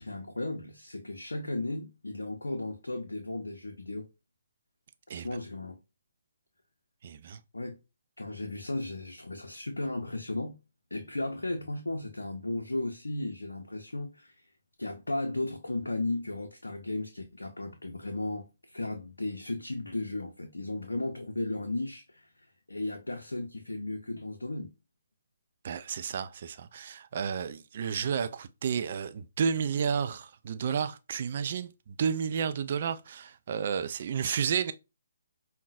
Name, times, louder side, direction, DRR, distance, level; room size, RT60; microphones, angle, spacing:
voice 1, 0.0-4.1 5.1-5.8 7.5-7.8 8.2-10.6 10.9-14.5 14.8-24.7, left 2 dB, 80° left, 0.6 m, -35 dB
voice 2, 7.0-7.4 25.6-34.7, right 7 dB, 45° right, 0.3 m, -31 dB
5.3 x 2.2 x 2.4 m
figure-of-eight pair, 135°, 0 cm